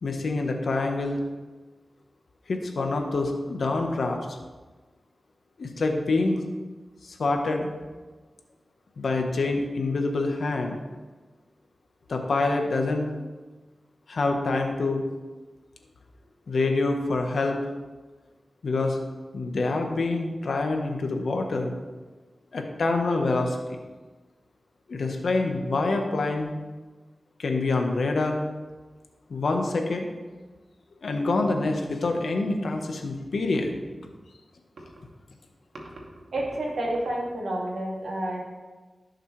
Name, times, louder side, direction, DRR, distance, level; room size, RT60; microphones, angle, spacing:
voice 1, 0.0-1.2 2.5-4.4 5.6-6.4 7.0-7.7 9.0-10.8 12.1-13.1 14.1-15.0 16.5-17.6 18.6-19.0 19.3-21.7 22.5-23.6 24.9-26.5 27.4-28.4 29.3-30.1 31.0-33.7, left 3 dB, 80° left, 4 dB, 1.2 m, -26 dB
voice 2, 36.3-38.4, right 1 dB, 90° right, -2 dB, 2.3 m, -29 dB
16.0 x 6.5 x 3.3 m, 1.3 s
cardioid pair, 60°, 0 cm